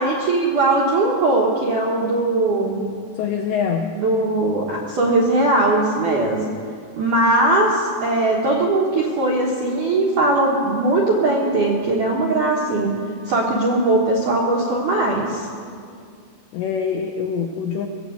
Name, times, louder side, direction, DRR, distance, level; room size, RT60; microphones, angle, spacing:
voice 1, 0.0-2.8 3.9-6.4 7.0-12.9 13.2-15.5, right 2 dB, 75° right, -2 dB, 1.8 m, -19 dB
voice 2, 3.2-4.0 16.5-17.9, left 7 dB, 80° left, 4 dB, 2.5 m, -24 dB
20.5 x 7.9 x 8.0 m, 2.3 s
omnidirectional pair, 5.8 m